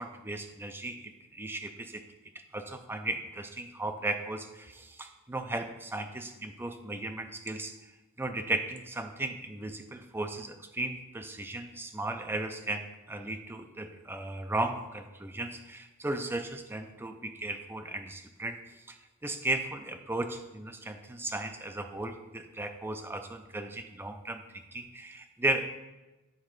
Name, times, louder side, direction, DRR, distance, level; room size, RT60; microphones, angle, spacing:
voice 1, 0.0-2.0 2.5-7.7 8.2-24.4 24.7-25.7, right 2 dB, 10° right, 6 dB, 0.4 m, -36 dB
9.5 x 4.0 x 3.2 m, 1.1 s
head